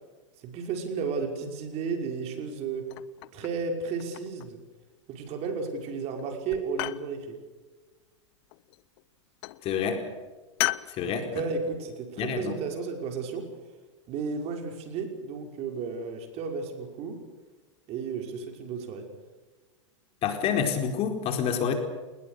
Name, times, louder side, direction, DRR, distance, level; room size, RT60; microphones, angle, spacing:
voice 1, 0.4-2.9 3.3-4.6 5.1-7.4 11.0-13.5 14.1-17.2 17.9-19.1, right 5 dB, 40° right, 4 dB, 5.8 m, -33 dB
sound 1, 2.9-3.6 4.0-4.6 5.4-5.9 6.2-7.1 8.5-9.0 9.4-9.7 10.6-10.9, left 20 dB, 55° left, 1.0 m, -34 dB
voice 2, 9.6-10.0 10.9-11.3 12.2-12.6 20.2-21.7, left 7 dB, 40° left, 5 dB, 4.6 m, -28 dB
29.0 x 21.0 x 6.8 m, 1.3 s
hypercardioid pair, 105°, 16 cm